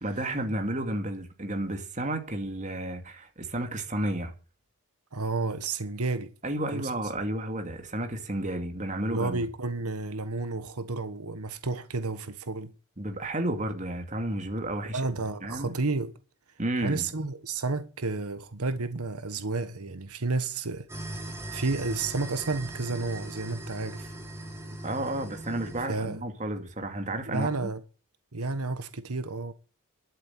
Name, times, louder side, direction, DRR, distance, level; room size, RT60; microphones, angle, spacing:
voice 1, 0.0-4.3 6.4-9.4 13.0-15.0 15.4-15.7 16.6-17.0 24.8-27.7, right 1 dB, 35° right, 2.4 m, -32 dB
voice 2, 5.1-6.3 6.7-6.9 9.1-12.7 14.9-16.1 16.8-20.9 21.5-24.1 25.9-26.2 27.3-27.8 28.3-29.5, right 3 dB, 85° right, 1.4 m, -31 dB
sound 1, 20.9-25.9, right 1 dB, 10° right, 3.2 m, -39 dB
12.5 x 7.6 x 9.8 m
head